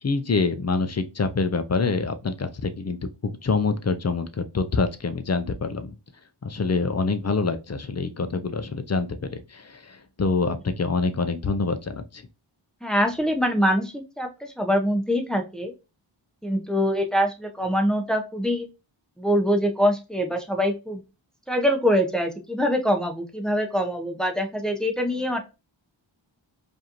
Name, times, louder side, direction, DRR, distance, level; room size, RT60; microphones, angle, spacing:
voice 1, 0.0-5.9 6.4-12.2, left 4 dB, 35° left, 0.5 m, -26 dB
voice 2, 12.8-15.7 16.4-18.7 19.2-21.0 21.5-25.4, equal, ahead, 0.7 m, -24 dB
4.8 x 2.6 x 2.9 m
wide cardioid pair, 65°, 48 cm